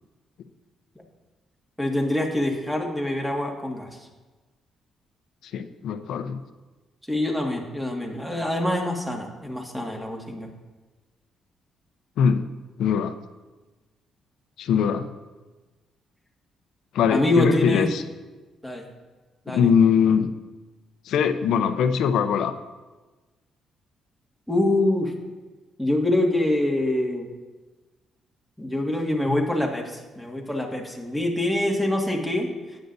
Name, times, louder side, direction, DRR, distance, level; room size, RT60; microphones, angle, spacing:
voice 1, 1.8-3.9 7.1-10.5 17.1-17.9 18.6-18.8 19.5-19.7 24.5-25.1 25.8-27.3 28.6-32.5, left 1 dB, 5° right, 0 dB, 1.9 m, -25 dB
voice 2, 5.4-6.4 12.2-12.5 12.8-13.1 14.6-15.1 16.9-18.0 19.5-20.3 21.0-22.6 29.3-29.4, left 7 dB, 80° left, 9 dB, 0.7 m, -22 dB
13.0 x 9.1 x 2.7 m, 1.2 s
cardioid pair, 90°, 0 cm